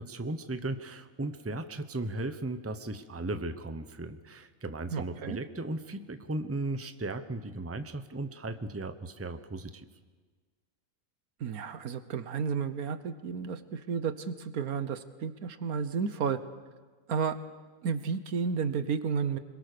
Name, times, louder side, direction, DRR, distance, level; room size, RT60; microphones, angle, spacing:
voice 1, 0.0-9.9, right 2 dB, 10° right, 10 dB, 0.8 m, -36 dB
voice 2, 4.9-5.4 11.4-16.4 17.1-17.4 17.8-19.4, right 6 dB, 85° right, 12 dB, 1.6 m, -32 dB
26.0 x 22.0 x 6.8 m, 1.4 s
omnidirectional pair, 1.5 m